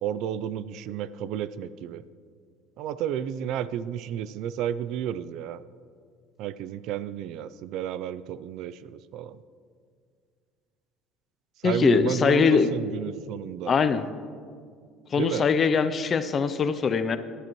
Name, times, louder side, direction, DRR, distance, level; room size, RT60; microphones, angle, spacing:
voice 1, 0.0-2.0 2.8-5.6 6.4-8.7 9.1-9.4 11.6-13.8 15.2-15.4, right 10 dB, 55° right, 16 dB, 0.3 m, -31 dB
voice 2, 11.6-12.7 13.7-14.1 15.1-17.2, left 5 dB, 25° left, 11 dB, 0.5 m, -22 dB
18.5 x 11.0 x 3.0 m, 2.1 s
cardioid pair, 170°, 0 cm